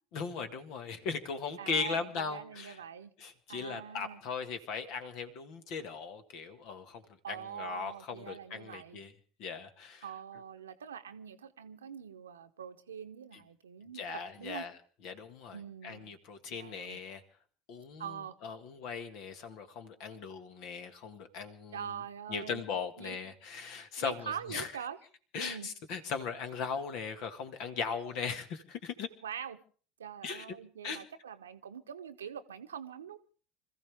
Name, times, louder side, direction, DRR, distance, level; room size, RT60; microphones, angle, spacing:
voice 1, 0.1-2.8 3.2-7.0 7.3-9.1 9.4-10.1 13.3-13.4 13.9-14.7 15.0-15.6 15.8-17.2 17.7-21.8 22.3-24.7 25.3-29.1 30.2-30.4 30.8-31.0, left 5 dB, 55° left, 9 dB, 1.8 m, -38 dB
voice 2, 1.6-3.1 3.5-4.2 7.2-9.0 10.0-14.7 15.5-16.1 16.5-17.0 18.0-18.4 21.7-22.6 23.0-23.2 24.0-25.0 25.3-25.7 29.2-29.6 30.0-33.2, right 8 dB, 80° right, 9 dB, 1.0 m, -44 dB
26.0 x 14.5 x 3.5 m, 0.41 s
figure-of-eight pair, 70°, 0 cm